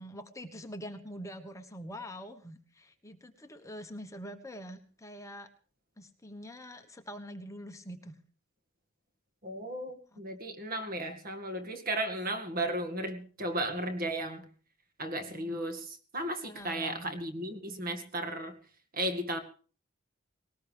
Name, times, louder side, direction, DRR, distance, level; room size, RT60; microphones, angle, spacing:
voice 1, 0.0-5.5 6.0-8.2 10.1-10.2 15.3-15.6 16.4-17.1, equal, 15° left, 7 dB, 1.3 m, -45 dB
voice 2, 9.4-14.5 15.0-18.5 18.9-19.4, right 1 dB, 50° right, 7 dB, 2.2 m, -35 dB
19.5 x 18.5 x 3.5 m, 0.40 s
head